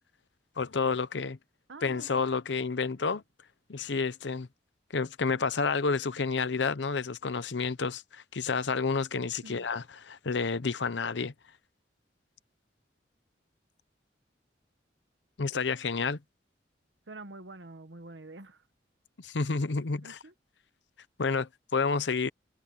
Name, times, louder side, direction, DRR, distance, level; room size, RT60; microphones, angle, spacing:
voice 1, 0.6-1.4 1.8-3.2 3.7-4.5 4.9-11.3 15.4-16.2 19.2-20.2 21.2-22.3, left 4 dB, 80° left, 0.8 m, -30 dB
voice 2, 1.7-2.1 9.4-9.6 17.1-18.6 20.0-20.3, right 2 dB, 80° right, 1.4 m, -46 dB
head